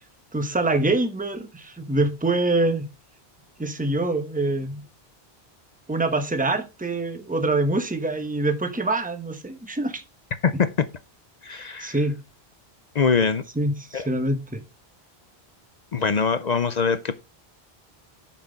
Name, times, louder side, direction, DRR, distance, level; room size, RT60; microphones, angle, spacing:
voice 1, 0.3-2.9 3.6-4.8 5.9-10.0 11.8-12.1 13.5-14.6, right 2 dB, 10° right, 1.0 m, -25 dB
voice 2, 11.4-12.0 12.9-13.4 13.9-14.1 15.9-17.2, left 5 dB, 50° left, 0.6 m, -23 dB
8.7 x 5.9 x 4.0 m
omnidirectional pair, 1.1 m